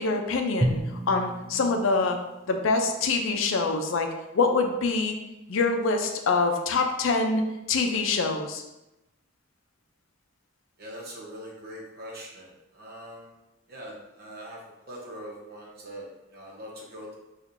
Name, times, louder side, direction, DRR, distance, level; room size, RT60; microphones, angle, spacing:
voice 1, 0.0-2.2 2.5-4.1 4.3-5.1 5.5-7.4 7.7-8.6, left 3 dB, 75° left, 4 dB, 0.4 m, -25 dB
Drum, 0.6-3.6, right 1 dB, 15° right, 0.3 m, -33 dB
voice 2, 10.8-12.5 12.8-13.3 13.7-14.6 14.9-16.0 16.3-17.2, equal, 50° right, -3 dB, 0.9 m, -42 dB
4.4 x 2.4 x 2.5 m, 0.96 s
head